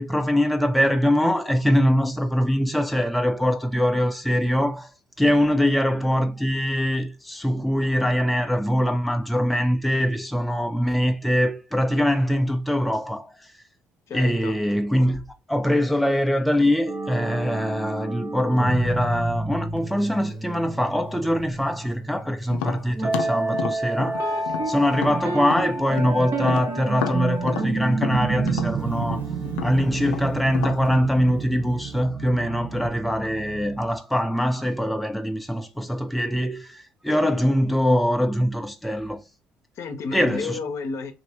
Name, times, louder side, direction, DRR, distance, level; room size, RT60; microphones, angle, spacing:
voice 1, 0.0-4.9 5.2-13.5 14.1-15.2 15.5-24.3 24.7-29.3 29.6-39.2 40.1-40.6, equal, ahead, 0.4 m, -23 dB
voice 2, 14.1-14.6 39.8-41.1, left 5 dB, 55° left, 0.7 m, -31 dB
sound 1, 16.9-32.9, right 2 dB, 35° right, 1.1 m, -31 dB
Tap, 22.5-26.1 26.4-30.8, left 10 dB, 85° left, 0.3 m, -32 dB
sound 2, 24.2-33.9, right 7 dB, 60° right, 0.8 m, -32 dB
3.0 x 2.6 x 2.9 m
hypercardioid pair, 60°, 6 cm